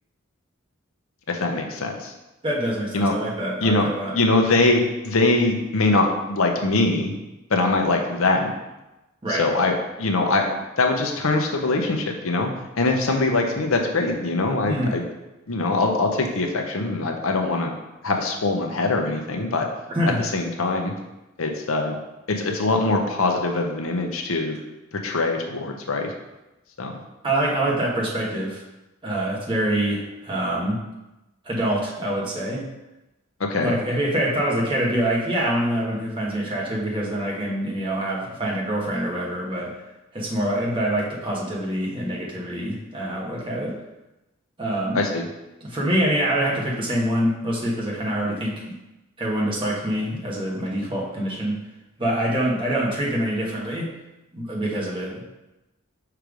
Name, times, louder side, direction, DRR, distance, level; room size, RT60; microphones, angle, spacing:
voice 1, 1.3-2.1 2.9-3.1 3.6-3.8 4.1-7.2 7.5-8.5 9.3-15.0 15.5-17.7 18.0-19.7 20.3-20.9 21.4-22.0 22.3-24.6 25.0-26.1 26.8-26.9 33.4-33.8 44.9-45.2, left 2 dB, 80° left, 3 dB, 0.8 m, -22 dB
voice 2, 2.4-4.1 9.2-9.5 14.7-15.0 19.9-20.2 27.2-28.6 29.0-30.8 31.4-32.6 33.6-39.7 40.1-43.8 44.6-45.0 45.6-48.8 49.2-51.6 52.0-53.9 54.3-55.2, right 1 dB, 25° right, -4 dB, 1.3 m, -25 dB
5.8 x 3.3 x 5.1 m, 0.99 s
head